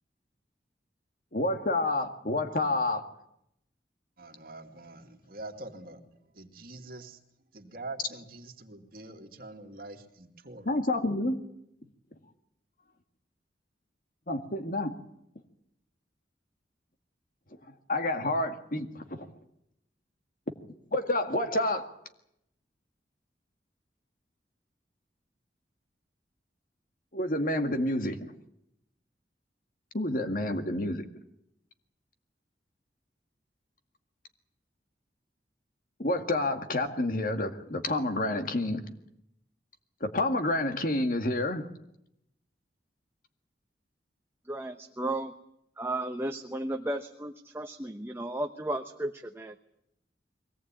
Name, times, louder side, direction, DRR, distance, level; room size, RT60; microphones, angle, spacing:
voice 1, 1.3-3.0 10.7-11.4 14.3-14.9 17.9-19.3 20.9-21.8 27.1-28.2 29.9-31.1 36.0-38.9 40.0-41.6, left 1 dB, 50° left, 7 dB, 2.0 m, -29 dB
voice 2, 4.2-6.0 6.3-7.2 7.5-10.8, right 2 dB, 55° right, 3 dB, 2.6 m, -45 dB
voice 3, 44.4-45.3 45.8-49.5, right 1 dB, 15° right, 5 dB, 1.0 m, -34 dB
23.0 x 18.0 x 9.0 m, 0.79 s
head